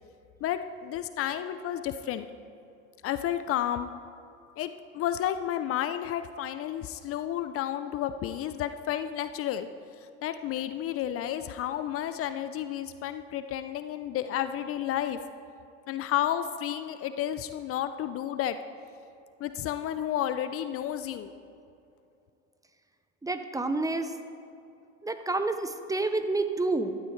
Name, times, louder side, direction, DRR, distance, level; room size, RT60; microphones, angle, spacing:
voice 1, 0.4-2.3 3.0-3.9 4.6-9.7 10.2-15.2 15.9-18.6 19.4-21.3, left 11 dB, 40° left, 11 dB, 0.5 m, -31 dB
voice 2, 23.2-24.1 25.0-27.0, right 2 dB, 10° right, 8 dB, 0.7 m, -29 dB
15.0 x 12.5 x 3.3 m, 2.6 s
hypercardioid pair, 85°, 37 cm